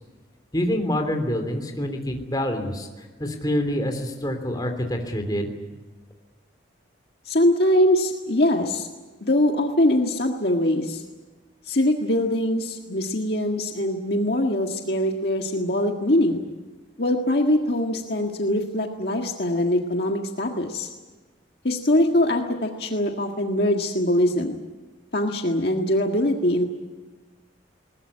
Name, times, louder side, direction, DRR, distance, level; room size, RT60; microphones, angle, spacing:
voice 1, 0.5-2.9 3.2-5.5, left 1 dB, 20° left, 4 dB, 3.2 m, -26 dB
voice 2, 7.2-8.9 9.2-11.0 11.6-16.4 17.0-20.9 21.6-24.6 25.1-26.6, left 1 dB, 55° left, 2 dB, 1.8 m, -22 dB
20.5 x 20.0 x 9.8 m, 1.3 s
head